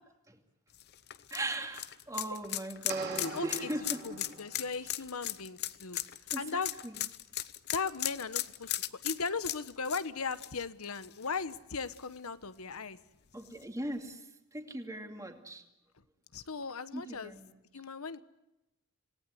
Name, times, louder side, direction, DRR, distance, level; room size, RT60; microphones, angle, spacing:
sound 1, 0.7-11.5 11.9-12.0 13.5-13.6, left 14 dB, 50° left, 0.8 m, -37 dB
voice 1, 1.3-4.0 6.3-7.0 13.3-15.6 16.9-17.5, right 1 dB, 15° right, 4 dB, 2.4 m, -39 dB
sound 2, 2.9-4.8, right 4 dB, 50° right, 4.1 m, -43 dB
voice 2, 3.2-3.7 4.0-6.0 6.4-6.7 7.7-13.0 16.3-17.4 17.7-18.2, left 4 dB, 80° left, 13 dB, 1.1 m, -37 dB
27.0 x 19.0 x 9.4 m, 0.95 s
head